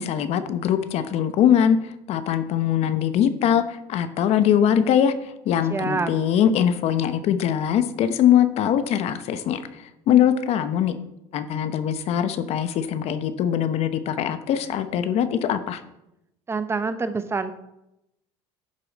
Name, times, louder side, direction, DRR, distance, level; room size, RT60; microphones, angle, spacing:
voice 1, 0.0-11.0 11.3-15.8, left 9 dB, 55° left, 11 dB, 0.9 m, -22 dB
voice 2, 5.7-6.1 16.5-17.5, right 4 dB, 20° right, 11 dB, 0.8 m, -26 dB
11.0 x 6.9 x 4.1 m, 0.86 s
supercardioid pair, 110°, 13 cm